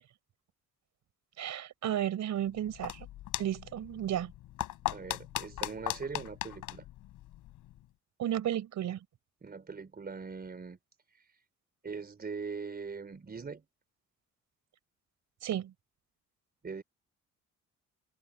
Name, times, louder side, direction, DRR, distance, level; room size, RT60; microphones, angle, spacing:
voice 1, 1.4-3.1 3.4-4.3 8.2-9.0 15.4-15.7, right 11 dB, 70° right, 4.7 m, -33 dB
sound 1, 2.5-7.9, left 15 dB, 90° left, 5.1 m, -39 dB
voice 2, 4.9-6.9 9.4-10.8 11.8-13.6 16.6-16.8, right 5 dB, 30° right, 4.1 m, -41 dB
cardioid pair, 90°, 30 cm